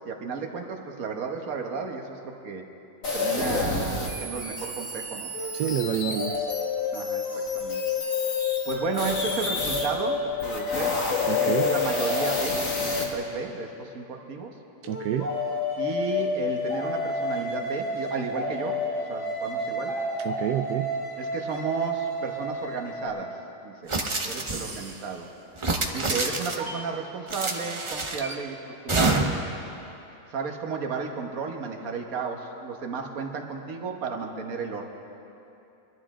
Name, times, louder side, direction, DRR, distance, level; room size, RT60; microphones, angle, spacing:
voice 1, 0.0-2.6 3.1-5.3 6.9-7.2 7.5-7.8 8.6-14.5 15.8-18.8 19.1-19.9 21.2-25.3 25.9-29.3 30.3-34.8, right 5 dB, 60° right, 3 dB, 1.6 m, -33 dB
sound 1, 3.0-9.9 10.3-13.0, left 3 dB, 55° left, 2.1 m, -30 dB
Native American Style flute in A, 5.3-13.7 14.8-23.1, left 3 dB, 75° left, 3.1 m, -30 dB
voice 2, 5.5-6.5 11.3-11.7 14.8-15.3 20.2-20.9, right 11 dB, 85° right, 5 dB, 1.2 m, -28 dB
sound 2, 23.9-24.9 25.6-26.7 27.3-28.3 28.9-29.5, right 2 dB, 30° right, 0.6 m, -27 dB
23.5 x 12.5 x 3.7 m, 2.9 s
omnidirectional pair, 1.7 m